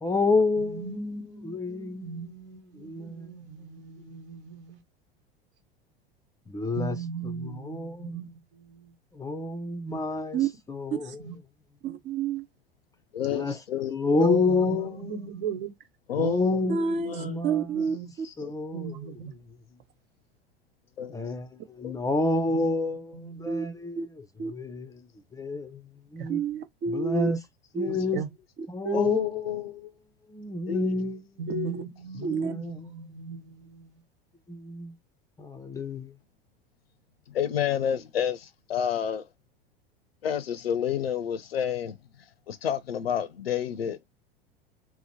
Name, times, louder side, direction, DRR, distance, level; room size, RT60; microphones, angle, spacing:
voice 1, 0.0-0.9 1.4-3.3 6.5-7.0 7.2-8.2 9.2-11.2 13.3-13.6 13.9-15.3 16.2-16.9 17.2-17.7 18.4-19.1 21.1-25.0 25.3-25.8 26.1-26.4 26.9-27.4 27.7-28.2 28.7-29.4 30.3-31.2 32.2-33.0 34.5-34.9 35.4-36.1, left 2 dB, 10° left, 0.5 m, -29 dB
voice 2, 0.6-4.8 6.7-8.9 11.2-11.4 14.2-15.7 16.2-18.1 18.7-19.3 22.6-23.8 26.2-26.3 27.9-28.3 31.4-34.0, right 5 dB, 65° right, 1.2 m, -38 dB
voice 3, 11.8-12.4 16.7-17.2 17.4-18.3 23.5-23.7 24.0-24.1 24.4-24.5 26.3-27.3 27.7-28.0 28.8-29.0 31.5-31.8 32.2-32.5, right 5 dB, 40° right, 0.8 m, -29 dB
voice 4, 13.1-14.9 16.1-16.6 17.1-17.3 18.2-18.7 21.0-21.1 21.8-21.9 28.9-29.9 30.7-30.9 37.3-39.3 40.2-42.0 42.5-44.0, left 9 dB, 85° left, 0.5 m, -30 dB
2.9 x 2.1 x 4.1 m
hypercardioid pair, 85°, 29 cm